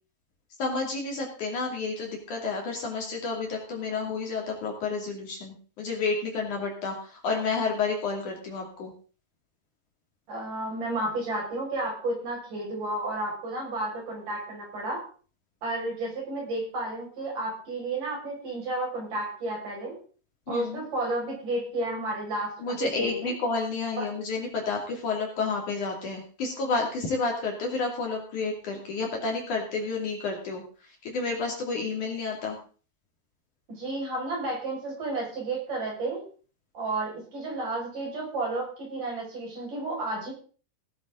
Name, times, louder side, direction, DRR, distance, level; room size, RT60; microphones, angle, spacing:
voice 1, 0.6-8.9 20.5-20.8 22.6-30.6 31.0-32.6, left 4 dB, 50° left, 0 dB, 3.8 m, -30 dB
voice 2, 10.3-15.0 15.6-20.0 20.5-23.4 24.0-24.1 33.7-36.2 36.7-40.3, right 2 dB, 50° right, -2 dB, 7.2 m, -32 dB
17.5 x 10.0 x 3.8 m, 0.40 s
omnidirectional pair, 4.8 m